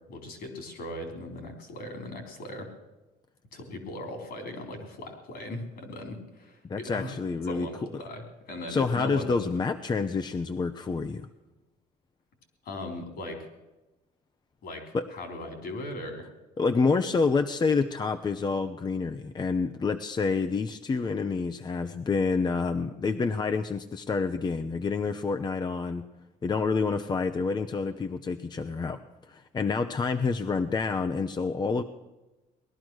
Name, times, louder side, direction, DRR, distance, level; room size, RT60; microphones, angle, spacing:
voice 1, 0.1-2.7 3.5-7.1 7.5-9.5 12.6-13.5 14.6-16.3, left 1 dB, 65° left, 5 dB, 3.9 m, -38 dB
voice 2, 6.7-7.7 8.7-11.3 14.9-15.1 16.6-26.1 26.4-29.0 29.3-31.8, left 4 dB, 25° left, 8 dB, 0.7 m, -28 dB
19.0 x 12.0 x 6.3 m, 1.0 s
cardioid pair, 110°, 17 cm